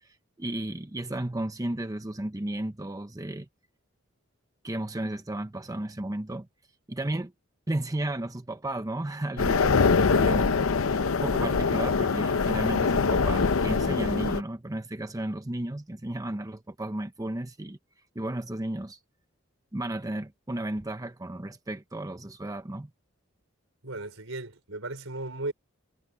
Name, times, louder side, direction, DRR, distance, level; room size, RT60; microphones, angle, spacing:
voice 1, 0.0-3.5 4.6-6.5 6.9-7.3 7.7-9.6 10.1-10.6 11.2-17.8 18.1-19.0 19.7-22.9, right 1 dB, 15° right, 0.8 m, -33 dB
sound 1, 9.4-14.4, left 4 dB, 90° left, 0.7 m, -24 dB
voice 2, 9.6-10.2 23.8-25.5, right 2 dB, 75° right, 5.2 m, -36 dB
head